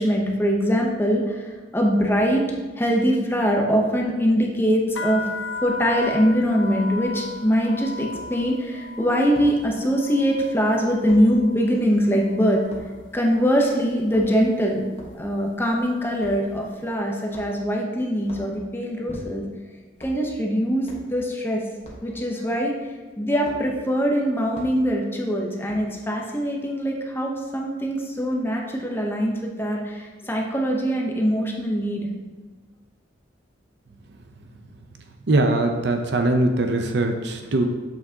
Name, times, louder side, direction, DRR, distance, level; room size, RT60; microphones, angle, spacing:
voice 1, 0.0-1.3 1.7-2.4 2.8-5.2 5.6-12.6 13.1-14.8 15.1-19.4 20.0-21.6 22.0-22.7 23.2-32.1, equal, 10° left, 0 dB, 0.8 m, -22 dB
sound 1, 4.9-12.8 13.1-13.7 14.4-14.7 14.9-16.4, left 3 dB, 80° left, 0.5 m, -36 dB
sound 2, 8.1-8.3 9.4-9.6 11.1-11.3 12.7-12.9 14.0-14.5 14.9-15.2 16.2-16.4 17.3-17.7 18.2-18.5 19.1-19.5 20.0-20.2 20.8-21.1 21.8-22.1 23.5-23.6 24.5-24.7 25.7-26.0, equal, 35° left, 1.2 m, -41 dB
voice 2, 35.3-37.7, right 2 dB, 60° right, 5 dB, 0.6 m, -21 dB
7.1 x 6.1 x 2.8 m, 1.3 s
head